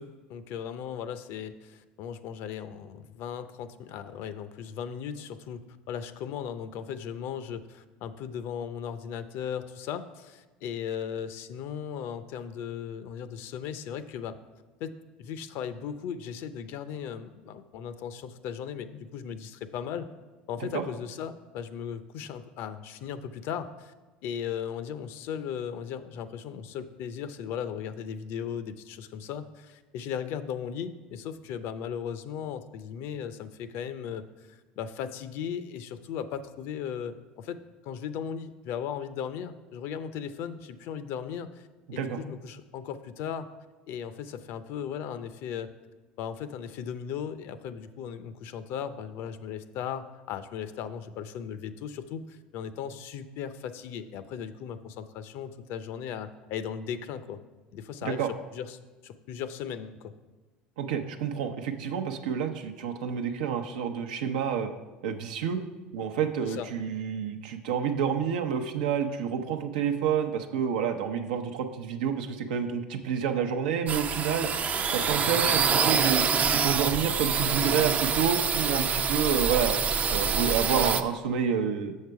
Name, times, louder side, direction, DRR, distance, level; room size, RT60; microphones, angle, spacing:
voice 1, 0.0-5.6 5.9-14.4 14.8-14.9 15.2-20.1 20.5-23.9 24.2-43.5 43.9-45.7 46.2-57.4 57.7-60.1 66.4-66.7, left 8 dB, 65° left, 12 dB, 0.6 m, -37 dB
voice 2, 60.8-64.7 65.0-65.6 65.9-74.5 74.9-76.2 76.5-79.8 80.1-81.9, right 7 dB, 85° right, 6 dB, 0.7 m, -29 dB
sound 1, 73.9-81.0, right 6 dB, 35° right, 0.5 m, -26 dB
6.7 x 6.5 x 4.6 m, 1.2 s
supercardioid pair, 95°, 4 cm